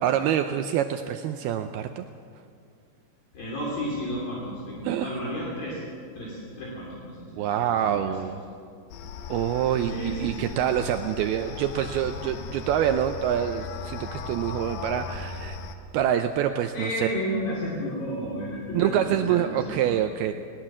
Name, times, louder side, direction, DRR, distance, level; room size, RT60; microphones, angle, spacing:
voice 1, 0.0-2.1 4.8-5.1 7.3-8.4 9.3-15.6 15.9-17.1 18.7-20.3, right 10 dB, 80° right, 7 dB, 2.3 m, -26 dB
voice 2, 3.3-5.8 6.1-8.2 9.8-10.5 16.7-20.0, equal, 55° left, -4 dB, 4.7 m, -32 dB
sound 1, 8.9-15.8, left 5 dB, 75° left, 2.9 m, -37 dB
20.0 x 19.5 x 7.4 m, 2.2 s
omnidirectional pair, 5.0 m